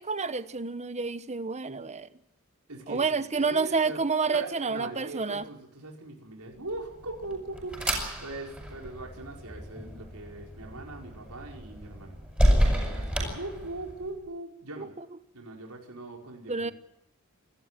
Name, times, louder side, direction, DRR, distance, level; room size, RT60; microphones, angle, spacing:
voice 1, 0.0-2.1 2.9-5.4 14.8-15.0 16.5-16.7, right 4 dB, 30° right, 13 dB, 1.0 m, -29 dB
voice 2, 2.7-4.0 4.3-7.8 8.2-12.2 12.7-14.9 15.3-16.7, right 2 dB, 85° right, 1 dB, 5.1 m, -40 dB
sound 1, 6.8-14.1, equal, 5° right, 7.5 m, -30 dB
28.5 x 13.0 x 9.2 m, 0.88 s
head